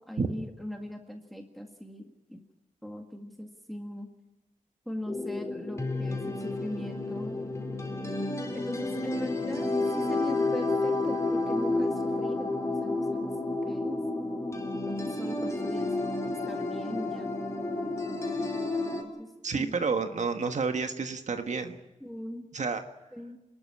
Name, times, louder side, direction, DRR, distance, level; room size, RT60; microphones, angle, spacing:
voice 1, 0.0-2.4 2.8-4.1 4.9-7.4 8.5-13.3 13.7-14.0 14.9-15.9 16.5-17.4 18.4-18.5 19.0-19.7 22.0-22.5 23.1-23.4, equal, ahead, 3 dB, 1.8 m, -40 dB
sound 1, 5.1-19.0, left 2 dB, 20° left, 4.1 m, -31 dB
voice 2, 19.4-21.8 22.5-22.8, right 4 dB, 60° right, 7 dB, 1.5 m, -30 dB
27.0 x 12.5 x 9.8 m, 1.0 s
wide cardioid pair, 100°, 14 cm